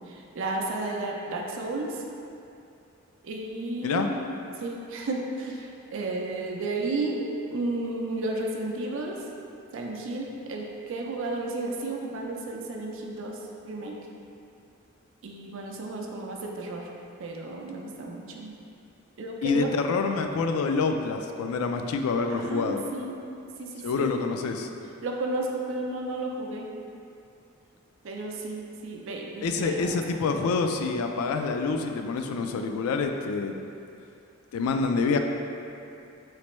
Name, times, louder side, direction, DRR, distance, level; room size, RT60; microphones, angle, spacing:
voice 1, 0.1-2.0 3.2-4.2 4.6-9.2 9.7-13.4 13.6-14.0 15.2-16.9 17.2-18.5 19.2-19.7 22.3-23.2 23.6-24.1 25.0-26.7 28.0-30.4, right 2 dB, 60° right, 0 dB, 0.4 m, -33 dB
voice 2, 19.4-22.8 23.8-24.7 29.4-33.5 34.5-35.2, left 4 dB, 80° left, 5 dB, 0.3 m, -27 dB
4.2 x 3.2 x 3.0 m, 2.6 s
head